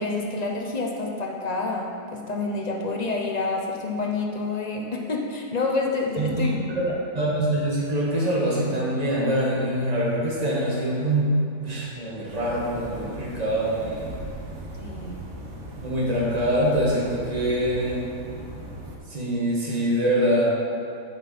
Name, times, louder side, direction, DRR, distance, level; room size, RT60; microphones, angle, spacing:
voice 1, 0.0-6.6 6.9-7.0 14.8-15.2, left 3 dB, 35° left, 0 dB, 0.8 m, -28 dB
voice 2, 6.2-6.5 7.1-14.2 15.8-18.0 19.1-20.5, right 1 dB, 25° right, -6 dB, 2.0 m, -24 dB
sound 1, 12.3-19.0, right 1 dB, 50° right, 1.4 m, -38 dB
9.4 x 7.4 x 4.3 m, 2.6 s
omnidirectional pair, 1.7 m